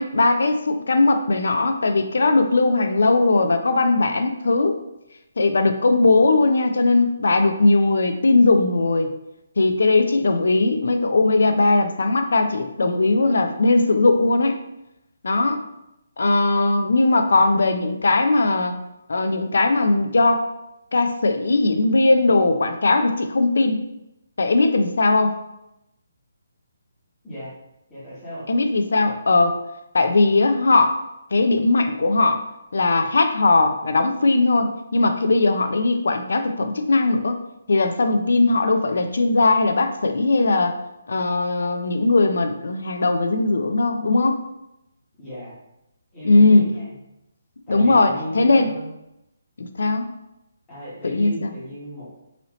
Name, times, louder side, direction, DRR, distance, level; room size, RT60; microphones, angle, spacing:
voice 1, 0.0-4.8 5.4-9.1 9.6-14.6 15.2-15.6 16.2-18.8 19.1-20.5 20.9-23.8 24.4-25.4 28.5-29.6 29.9-31.0 31.3-32.4 32.7-37.4 37.7-40.8 41.1-44.4 46.2-46.7 47.7-48.7 49.6-50.1 51.0-51.5, left 2 dB, 65° left, 8 dB, 0.4 m, -19 dB
voice 2, 27.9-28.5 45.2-45.5 46.1-47.0 47.7-48.9 50.7-52.1, equal, 5° left, -12 dB, 1.1 m, -35 dB
4.0 x 2.8 x 3.0 m, 0.86 s
hypercardioid pair, 180°, 0 cm